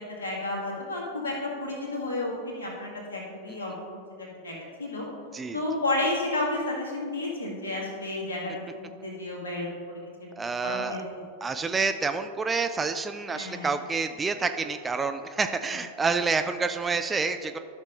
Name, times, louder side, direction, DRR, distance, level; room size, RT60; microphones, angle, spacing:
voice 1, 0.0-5.0 5.5-10.3 10.6-11.0 13.3-13.7, left 2 dB, 70° left, -3 dB, 2.0 m, -32 dB
voice 2, 10.3-11.0 11.4-17.6, right 4 dB, 15° right, 8 dB, 0.3 m, -28 dB
12.5 x 6.2 x 2.6 m, 2.4 s
figure-of-eight pair, 90°, 0 cm